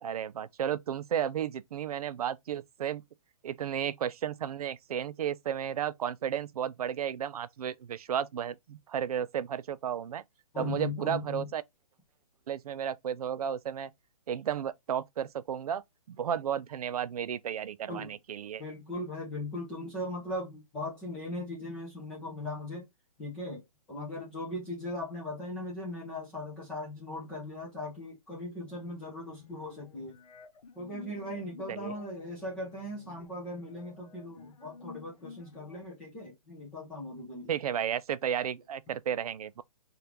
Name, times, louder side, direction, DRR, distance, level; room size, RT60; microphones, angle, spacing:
voice 1, 0.0-3.0 3.4-10.2 10.6-11.6 12.5-13.9 14.3-18.6 31.7-31.9 37.5-39.6, right 9 dB, 75° right, 0.4 m, -33 dB
voice 2, 10.5-11.5 17.9-18.2 18.6-22.9 23.2-23.6 23.9-30.1 30.7-37.5, left 1 dB, 5° left, 0.3 m, -39 dB
sound 1, 28.7-35.8, left 4 dB, 75° left, 0.8 m, -52 dB
3.4 x 2.4 x 2.8 m
hypercardioid pair, 165°, 20 cm